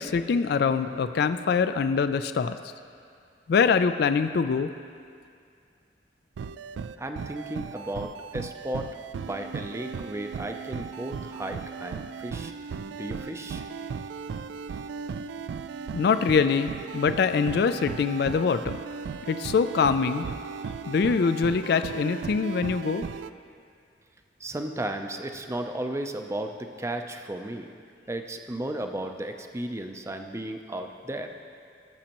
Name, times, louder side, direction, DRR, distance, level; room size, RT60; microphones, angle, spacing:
voice 1, 0.0-2.6 3.5-4.7 15.9-18.8 19.3-20.3 20.9-23.1, left 5 dB, 60° left, 11 dB, 0.3 m, -24 dB
sound 1, 6.4-23.3, right 6 dB, 85° right, 0.3 m, -36 dB
voice 2, 7.0-8.9 9.2-12.5 12.9-13.7 24.4-27.7 28.1-31.3, right 1 dB, 15° right, 5 dB, 0.5 m, -34 dB
17.5 x 7.3 x 3.0 m, 2.3 s
head